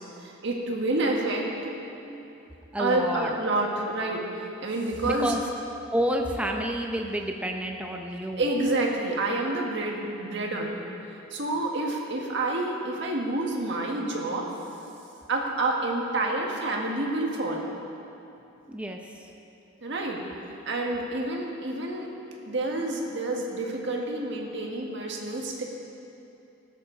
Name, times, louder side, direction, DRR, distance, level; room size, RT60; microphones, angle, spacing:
voice 1, 0.2-1.7 2.8-5.3 8.4-10.9 11.3-14.5 15.3-17.6 19.8-20.2 20.6-22.1 22.4-25.6, right 2 dB, 55° right, 0 dB, 1.7 m, -28 dB
voice 2, 2.7-3.3 5.0-5.4 5.9-8.5 18.7-19.3, equal, 5° right, 2 dB, 0.6 m, -30 dB
17.0 x 12.0 x 3.9 m, 2.8 s
head